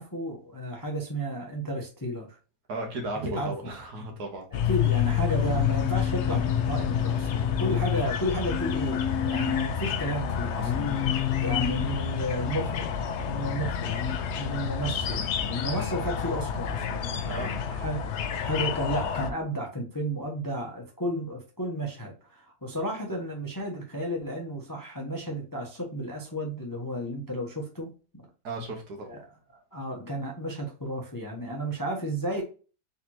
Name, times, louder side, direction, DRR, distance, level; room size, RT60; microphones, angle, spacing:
voice 1, 0.0-2.4 3.2-3.7 4.5-14.0 14.4-28.3 29.1-29.2 29.5-32.4, equal, 20° left, 0.6 m, -33 dB
voice 2, 2.7-4.5 17.3-17.5 28.4-29.1, right 2 dB, 75° right, 1.8 m, -35 dB
sound 1, 4.5-19.3, left 8 dB, 75° left, 0.6 m, -29 dB
Singing, 5.4-7.9 8.5-9.7 10.6-11.9 13.8-14.2, left 9 dB, 55° left, 0.9 m, -32 dB
4.1 x 4.0 x 2.9 m
omnidirectional pair, 1.8 m